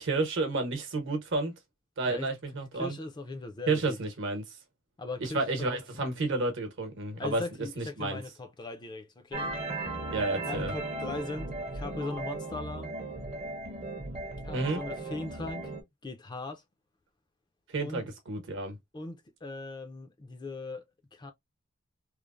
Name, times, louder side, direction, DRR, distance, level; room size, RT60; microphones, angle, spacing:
voice 1, 0.0-1.5 2.0-3.0 3.7-4.4 5.2-7.4 7.8-8.2 10.1-10.7 14.5-14.8 17.7-18.8, right 3 dB, 60° right, 0.9 m, -31 dB
voice 2, 2.7-4.0 5.0-6.1 7.2-9.5 10.4-13.0 14.4-15.7 16.0-16.6 17.8-18.0 18.9-20.8 21.1-21.3, left 2 dB, 20° left, 0.4 m, -39 dB
sound 1, 9.3-15.8, right 2 dB, 30° right, 0.6 m, -36 dB
3.1 x 2.0 x 2.3 m
head